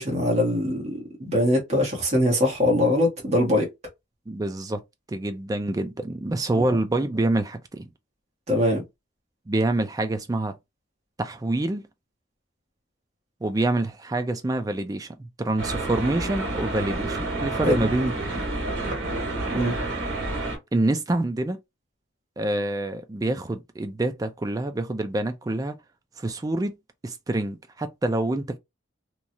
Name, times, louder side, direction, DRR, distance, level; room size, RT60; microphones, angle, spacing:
voice 1, 0.0-3.7 8.5-8.8 17.6-17.8 19.5-19.8, left 1 dB, 35° right, 1.2 m, -22 dB
voice 2, 4.3-4.8 5.1-7.9 9.5-10.6 11.2-11.9 13.4-18.4 20.7-21.6 22.4-25.8 26.2-26.8 27.0-28.6, right 2 dB, 20° right, 0.3 m, -26 dB
sound 1, 15.6-20.6, right 2 dB, 90° right, 1.4 m, -29 dB
3.0 x 2.3 x 2.7 m
head